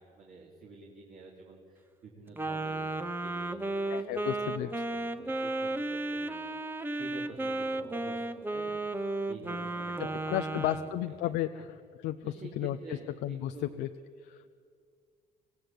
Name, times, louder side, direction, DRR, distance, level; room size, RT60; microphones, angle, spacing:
voice 1, 0.0-2.9 3.2-8.2 8.5-11.0 11.5-11.6 12.2-13.8, right 3 dB, 55° right, -2 dB, 3.3 m, -49 dB
Wind instrument woodwind instrument, 2.4-11.0, right 2 dB, 10° right, 1.0 m, -34 dB
voice 2, 3.9-4.8 10.3-11.7 12.0-12.2 12.6-12.8 13.2-13.5 13.8-13.9 14.3-14.5, left 13 dB, 85° left, 7 dB, 0.7 m, -33 dB
26.0 x 16.5 x 8.4 m, 2.1 s
cardioid pair, 110°, 17 cm